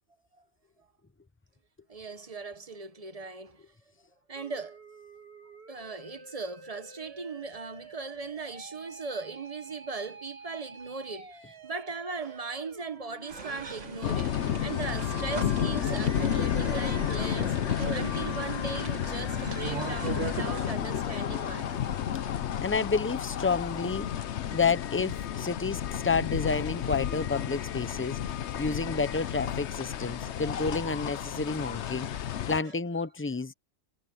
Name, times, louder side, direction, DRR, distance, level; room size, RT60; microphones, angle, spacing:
voice 1, 1.9-3.6 4.3-4.8 5.7-14.3 14.6-17.5 17.9-21.8 24.2-24.3 30.2-30.6 32.6-32.7, right 4 dB, 30° right, 1.3 m, -39 dB
Musical instrument, 4.4-22.3, right 3 dB, 55° right, 2.4 m, -49 dB
sound 1, 13.3-20.8, right 5 dB, 80° right, 2.0 m, -39 dB
sound 2, 14.0-32.6, left 9 dB, 70° left, 1.0 m, -31 dB
voice 2, 22.6-24.1 24.5-28.2 28.6-32.1 32.5-33.5, left 4 dB, 10° left, 0.7 m, -30 dB
omnidirectional pair, 1.2 m